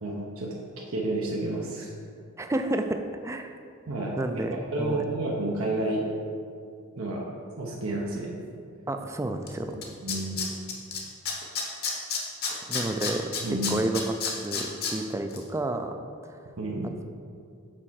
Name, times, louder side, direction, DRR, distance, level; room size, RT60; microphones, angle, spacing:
voice 1, 0.0-1.9 3.9-6.0 7.0-7.2 7.6-8.3 10.0-10.4 13.4-13.8 16.6-16.9, right 2 dB, 85° right, -3 dB, 0.9 m, -30 dB
voice 2, 2.4-3.5 4.2-4.5 4.8-5.0 8.9-9.8 12.7-13.3 13.7-15.9, right 2 dB, 15° right, 6 dB, 0.4 m, -30 dB
Tools, 9.5-9.6 9.8-11.0 11.3-14.9 15.3-15.4, left 6 dB, 50° left, 1.1 m, -29 dB
6.3 x 4.4 x 6.3 m, 2.3 s
head